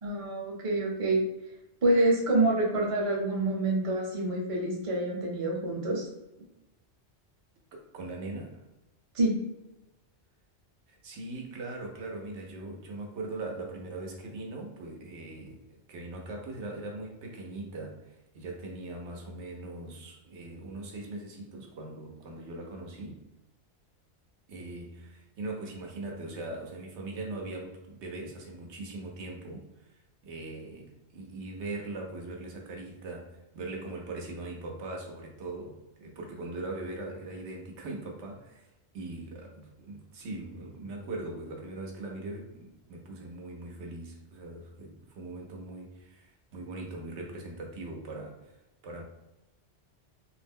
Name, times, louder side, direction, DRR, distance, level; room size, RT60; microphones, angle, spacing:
voice 1, 0.0-1.3 1.8-6.1 9.1-9.3, right 2 dB, 35° right, 0.6 m, -27 dB
voice 2, 7.7-8.6 10.9-23.2 24.5-48.6 48.8-49.0, right 2 dB, 80° right, 0.9 m, -40 dB
2.5 x 2.0 x 3.4 m
omnidirectional pair, 1.1 m